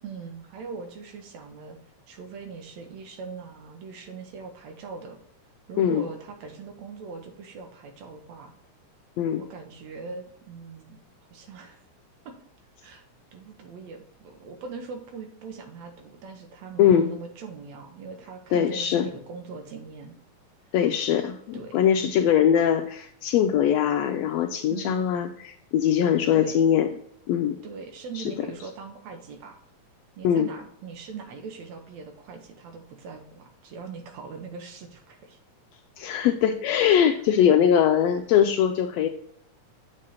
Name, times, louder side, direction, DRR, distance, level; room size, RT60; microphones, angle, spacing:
voice 1, 0.0-1.8 2.1-5.2 5.7-8.5 9.4-11.0 11.3-11.8 12.3-12.4 12.8-13.0 13.3-20.2 21.5-21.8 24.7-25.2 26.3-26.6 27.6-29.6 30.2-35.4, right 5 dB, 65° right, 5 dB, 2.2 m, -41 dB
voice 2, 5.8-6.1 9.2-9.4 16.8-17.1 18.5-19.1 20.7-26.9 27.3-27.6 28.1-28.3 30.2-30.5 36.0-39.1, left 9 dB, 85° left, 5 dB, 1.4 m, -22 dB
7.5 x 5.0 x 4.1 m, 0.66 s
omnidirectional pair, 3.6 m